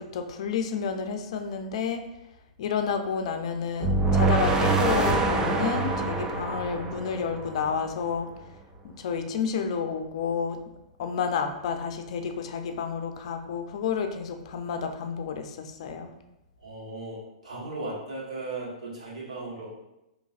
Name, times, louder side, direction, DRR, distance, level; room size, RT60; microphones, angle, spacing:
voice 1, 0.0-2.0 2.6-8.3 8.8-10.6 11.0-16.1, left 6 dB, 60° left, 6 dB, 0.5 m, -30 dB
sound 1, 3.8-7.9, right 3 dB, 20° right, 0.5 m, -25 dB
voice 2, 16.6-17.2 17.4-19.7, right 2 dB, 80° right, -4 dB, 1.4 m, -36 dB
5.2 x 3.0 x 2.4 m, 0.92 s
hypercardioid pair, 115°, 4 cm